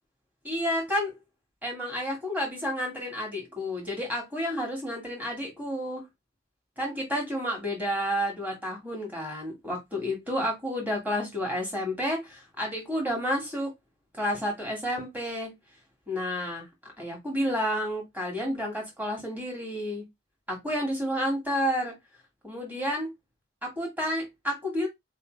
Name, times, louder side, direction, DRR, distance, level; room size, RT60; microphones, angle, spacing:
voice 1, 0.4-1.1 1.6-6.1 6.8-13.7 14.1-15.5 16.1-16.6 17.0-20.0 20.5-21.9 22.4-23.1 23.6-24.9, equal, 10° right, 1.6 m, -30 dB
4.0 x 3.2 x 3.1 m
head